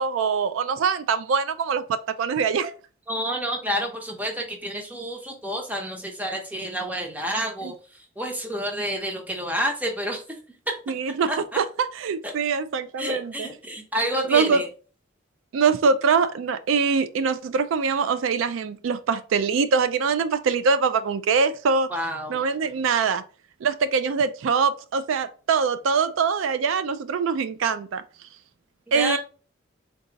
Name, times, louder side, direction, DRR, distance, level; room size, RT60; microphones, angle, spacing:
voice 1, 0.0-2.7 7.6-7.7 10.9-13.5 14.3-14.6 15.5-21.9 22.3-23.2 23.6-28.0 28.9-29.2, right 5 dB, 85° right, 0.4 m, -23 dB
voice 2, 3.1-7.7 8.2-10.2 10.7-10.8 11.3-11.4 12.2-12.3 13.0-14.7 21.9-22.4 28.9-29.2, equal, 10° right, 0.7 m, -29 dB
3.9 x 2.3 x 3.8 m
head